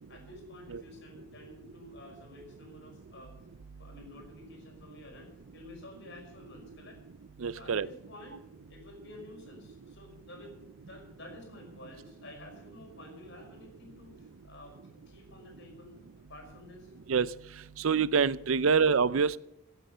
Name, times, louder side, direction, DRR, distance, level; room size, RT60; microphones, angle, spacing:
voice 1, 0.0-3.4 3.8-7.0 7.5-8.4 8.7-16.0 16.3-17.0, left 2 dB, 55° left, 3 dB, 5.7 m, -51 dB
voice 2, 7.4-7.9 17.1-17.3 17.8-19.4, right 5 dB, 70° right, 18 dB, 0.5 m, -26 dB
16.5 x 9.2 x 6.8 m, 0.83 s
head